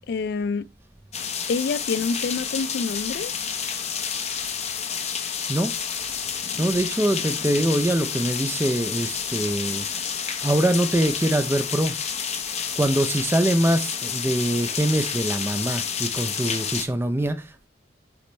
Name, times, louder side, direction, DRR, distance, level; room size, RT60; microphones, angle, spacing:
voice 1, 0.1-0.7 1.5-3.3, left 4 dB, 60° left, 0.3 m, -27 dB
sound 1, 1.1-16.9, left 7 dB, 35° left, 0.8 m, -29 dB
voice 2, 6.6-10.2 10.4-11.9 12.8-17.7, right 1 dB, 10° right, 0.4 m, -24 dB
8.4 x 3.1 x 4.2 m
head